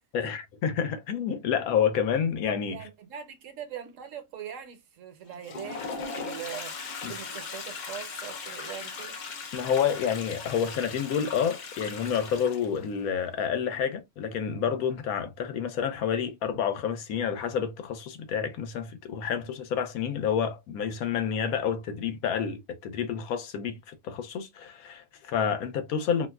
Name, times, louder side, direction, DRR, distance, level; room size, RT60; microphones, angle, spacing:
voice 1, 0.1-2.8 7.0-7.1 9.5-26.3, left 7 dB, 85° left, 1.1 m, -29 dB
voice 2, 2.7-9.2 23.7-23.8, right 9 dB, 70° right, 1.0 m, -42 dB
Toilet flush, 5.3-12.9, left 4 dB, 65° left, 0.4 m, -39 dB
4.3 x 2.2 x 2.2 m
omnidirectional pair, 1.5 m